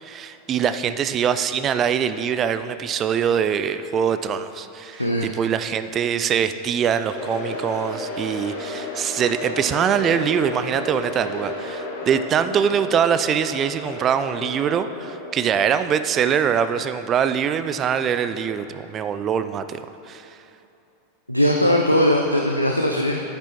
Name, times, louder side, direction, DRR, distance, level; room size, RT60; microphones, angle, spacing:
voice 1, 0.0-20.4, right 8 dB, 30° right, 11 dB, 0.3 m, -23 dB
sound 1, 7.1-17.2, left 2 dB, 50° left, 1.7 m, -33 dB
voice 2, 21.3-23.2, equal, 90° left, 1 dB, 0.5 m, -19 dB
10.0 x 8.5 x 3.0 m, 2.8 s
figure-of-eight pair, 90°, 0 cm